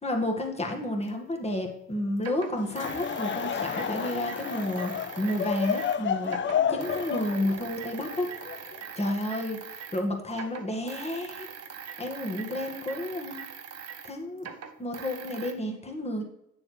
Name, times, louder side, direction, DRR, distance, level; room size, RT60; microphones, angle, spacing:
voice 1, 0.0-8.3 9.0-11.5 12.0-13.4 14.0-14.5 14.8-16.2, left 1 dB, 20° left, 2 dB, 1.7 m, -31 dB
sound 1, 1.1-1.2 2.2-6.0 6.2-10.0 10.3-15.5, right 7 dB, 55° right, 1.1 m, -42 dB
Laughter / Crowd, 2.6-9.0, left 8 dB, 40° left, 0.5 m, -31 dB
8.7 x 7.1 x 3.3 m, 0.83 s
cardioid pair, 90°, 30 cm